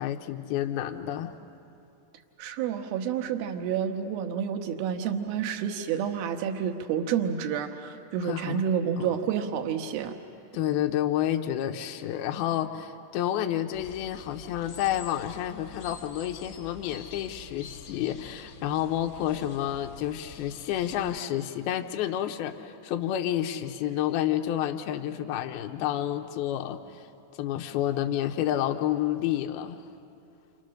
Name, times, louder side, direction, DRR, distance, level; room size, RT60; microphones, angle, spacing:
voice 1, 0.0-1.4 8.2-8.7 9.0-9.1 10.5-27.1 27.4-29.8, left 11 dB, 80° left, 5 dB, 2.3 m, -30 dB
voice 2, 2.4-10.1, right 8 dB, 65° right, 6 dB, 2.6 m, -29 dB
sound 1, 13.7-21.2, left 6 dB, 45° left, 1.9 m, -47 dB
29.0 x 26.5 x 6.5 m, 2.6 s
omnidirectional pair, 5.4 m